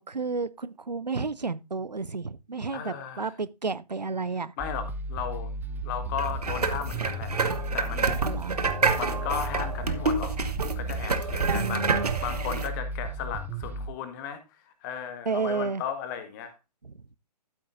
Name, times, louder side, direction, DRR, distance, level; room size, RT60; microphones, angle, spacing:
voice 1, 0.0-4.5 8.2-8.6 11.5-12.1 15.3-15.8 16.8-17.0, right 4 dB, 90° right, 0.6 m, -31 dB
voice 2, 2.7-3.3 4.6-5.5 5.8-8.2 9.0-10.3 10.7-16.5, left 8 dB, 30° left, 1.6 m, -35 dB
sound 1, 4.6-13.9, right 1 dB, 10° right, 0.8 m, -34 dB
sound 2, 6.2-12.7, right 4 dB, 70° right, 1.3 m, -28 dB
13.0 x 8.4 x 2.6 m
figure-of-eight pair, 130°, 21 cm